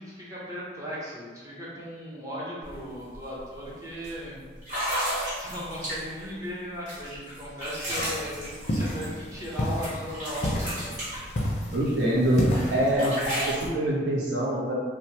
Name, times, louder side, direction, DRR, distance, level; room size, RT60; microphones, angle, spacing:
voice 1, 0.0-4.4 5.3-11.0, equal, 20° right, -6 dB, 0.6 m, -37 dB
sound 1, 2.6-2.8 3.1-3.4 4.0-4.1 4.6-6.3 6.9-9.6 9.8-11.9 12.3-13.7, equal, 45° right, 1.0 m, -33 dB
sound 2, 7.9-12.9, equal, 40° left, 0.4 m, -31 dB
voice 2, 11.7-14.7, right 1 dB, 80° right, -4 dB, 0.7 m, -25 dB
2.8 x 2.1 x 2.8 m, 1.5 s
head